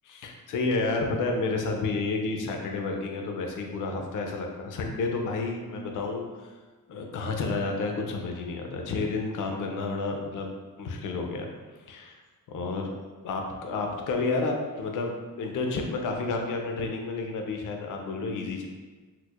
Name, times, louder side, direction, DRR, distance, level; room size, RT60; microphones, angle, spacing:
voice 1, 0.0-6.5 6.9-10.5 10.8-11.5 11.9-12.2 12.5-12.9 13.2-18.7, left 3 dB, 60° left, 2 dB, 0.5 m, -30 dB
4.4 x 2.0 x 2.3 m, 1.4 s
wide cardioid pair, 155°, 35 cm